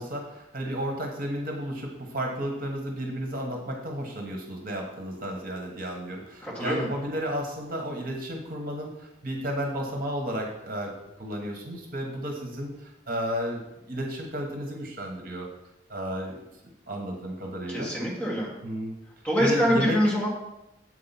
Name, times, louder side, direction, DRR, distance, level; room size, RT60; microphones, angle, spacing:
voice 1, 0.0-10.9 11.2-15.5 15.9-16.4 16.9-17.9 18.6-18.9 19.4-20.0, equal, 50° right, 1 dB, 1.3 m, -32 dB
voice 2, 6.4-6.9 17.7-18.5 19.2-20.3, equal, 10° left, -5 dB, 2.0 m, -25 dB
7.6 x 4.8 x 5.8 m, 0.91 s
head